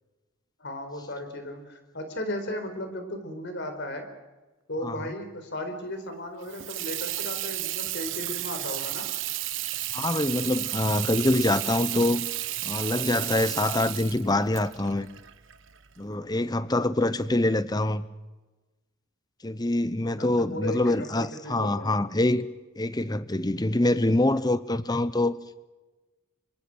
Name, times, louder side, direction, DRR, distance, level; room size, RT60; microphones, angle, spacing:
voice 1, 0.6-4.0 4.7-9.1 20.2-22.0, left 1 dB, 50° left, 4.5 m, -35 dB
Water tap faucet / Sink (filling or washing), 6.4-16.0, right 14 dB, 60° right, 1.1 m, -33 dB
voice 2, 9.9-12.3 12.6-15.1 16.0-18.1 19.4-22.5 22.8-25.4, left 1 dB, 20° left, 0.8 m, -25 dB
25.5 x 24.0 x 6.3 m
head